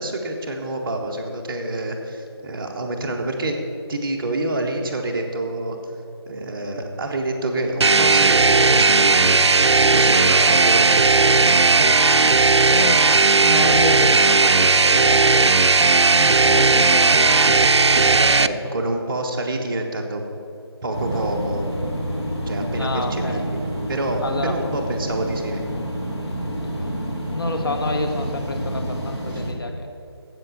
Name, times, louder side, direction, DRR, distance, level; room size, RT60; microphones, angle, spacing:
voice 1, 0.0-3.6 3.9-5.8 6.3-11.7 18.2-20.2 20.8-21.7 22.5-25.6, right 1 dB, 10° right, -6 dB, 0.5 m, -27 dB
sound 1, 7.8-18.5, right 4 dB, 85° right, 0.4 m, -16 dB
voice 2, 12.7-15.6 16.1-18.5 22.8-23.4 24.2-24.6 26.7-27.0 27.3-29.9, left 2 dB, 55° left, 5 dB, 1.0 m, -29 dB
sound 2, 20.9-29.5, equal, 75° left, 2.4 m, -28 dB
7.7 x 7.6 x 8.1 m, 2.6 s
figure-of-eight pair, 160°, 14 cm